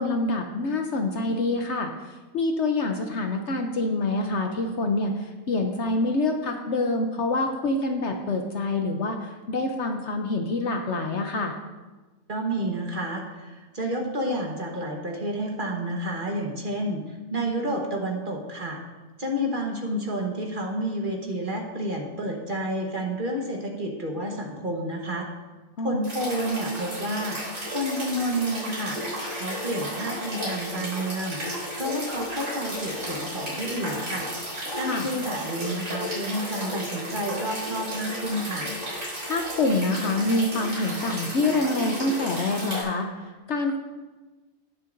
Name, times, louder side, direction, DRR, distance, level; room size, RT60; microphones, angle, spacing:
voice 1, 0.0-11.6 25.8-26.0 34.8-35.1 39.2-43.8, left 2 dB, 60° left, 4 dB, 0.9 m, -26 dB
voice 2, 12.3-17.0 17.3-18.8 19.2-25.3 25.8-27.4 27.7-34.3 34.7-38.7, right 1 dB, 35° right, 0 dB, 1.3 m, -30 dB
sound 1, 26.0-42.8, equal, 90° right, 3.9 m, -33 dB
18.0 x 6.6 x 2.6 m, 1.2 s
omnidirectional pair, 1.5 m